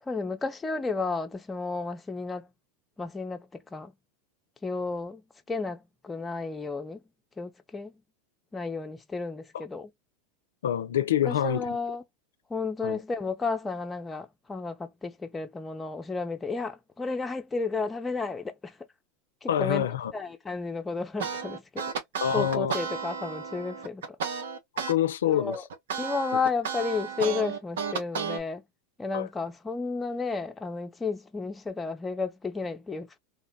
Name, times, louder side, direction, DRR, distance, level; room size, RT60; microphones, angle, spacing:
voice 1, 0.0-2.5 3.0-3.9 4.6-5.2 5.5-7.0 7.4-7.9 8.5-9.9 11.2-12.0 12.5-18.7 19.4-21.8 22.3-24.2 25.3-25.6 26.0-28.6 29.0-33.2, left 4 dB, 15° left, 0.5 m, -32 dB
voice 2, 10.6-11.6 12.8-13.0 19.5-20.1 22.2-22.8 24.9-25.5 29.1-29.3, left 10 dB, 80° left, 0.3 m, -26 dB
sound 1, 21.2-25.0 25.3-28.4, right 6 dB, 75° right, 0.7 m, -33 dB
2.9 x 2.0 x 2.7 m
hypercardioid pair, 95°, 0 cm